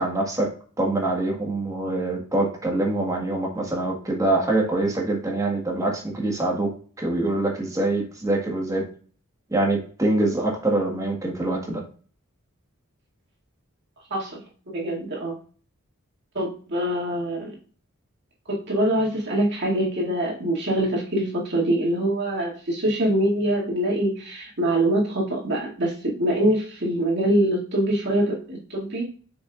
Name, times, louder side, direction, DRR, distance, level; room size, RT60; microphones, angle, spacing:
voice 1, 0.0-6.7 7.0-8.9 9.5-11.8, right 2 dB, 15° right, 0 dB, 1.6 m, -24 dB
voice 2, 14.7-15.4 16.3-17.6 18.5-29.1, right 1 dB, 55° right, -3 dB, 2.3 m, -24 dB
6.3 x 6.0 x 2.5 m, 0.41 s
head